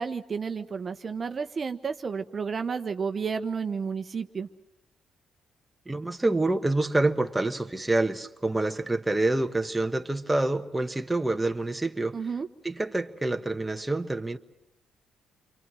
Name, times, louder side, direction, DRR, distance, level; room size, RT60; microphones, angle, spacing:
voice 1, 0.0-4.5 12.1-12.5, right 5 dB, 40° right, 1.1 m, -31 dB
voice 2, 5.9-12.3 12.6-14.4, right 2 dB, 10° right, 1.2 m, -27 dB
28.5 x 24.0 x 6.3 m
cardioid pair, 90°, 0 cm